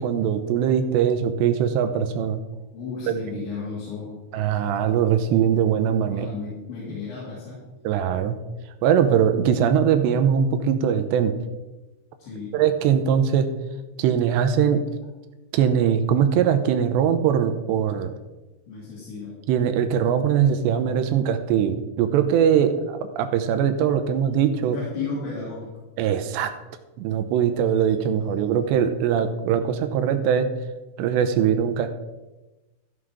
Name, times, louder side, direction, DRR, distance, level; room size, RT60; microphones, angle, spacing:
voice 1, 0.0-2.4 4.3-6.3 7.8-8.4 8.8-11.3 12.5-13.5 14.0-14.8 15.5-18.1 19.5-24.8 26.0-26.5 27.0-30.5 31.0-31.9, right 8 dB, 80° right, 8 dB, 2.9 m, -21 dB
voice 2, 2.7-4.2 6.1-7.6 12.2-12.6 18.7-19.4 24.6-25.7, left 4 dB, 75° left, -7 dB, 5.1 m, -33 dB
14.5 x 7.8 x 4.9 m, 1.1 s
omnidirectional pair, 5.2 m